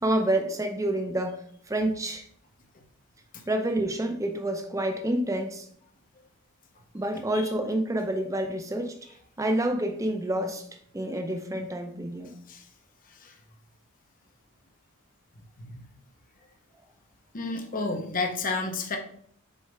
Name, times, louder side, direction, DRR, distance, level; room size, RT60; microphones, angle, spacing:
voice 1, 0.0-2.3 3.5-5.7 6.9-9.0 9.4-10.7 10.9-12.3, right 1 dB, 15° right, 0.7 m, -28 dB
voice 2, 17.3-19.0, left 3 dB, 40° left, 0.9 m, -31 dB
6.4 x 4.6 x 3.3 m
head